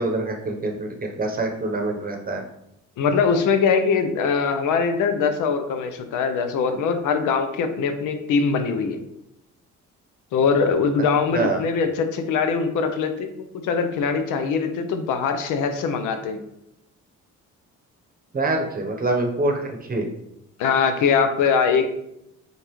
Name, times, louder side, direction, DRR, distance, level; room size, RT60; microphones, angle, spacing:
voice 1, 0.0-2.4 11.3-11.6 18.3-20.1, right 2 dB, 30° right, 2 dB, 0.8 m, -25 dB
voice 2, 3.0-9.0 10.3-16.4 20.6-21.8, left 5 dB, 85° left, 7 dB, 0.6 m, -22 dB
5.2 x 2.4 x 3.0 m, 0.80 s
cardioid pair, 90°, 30 cm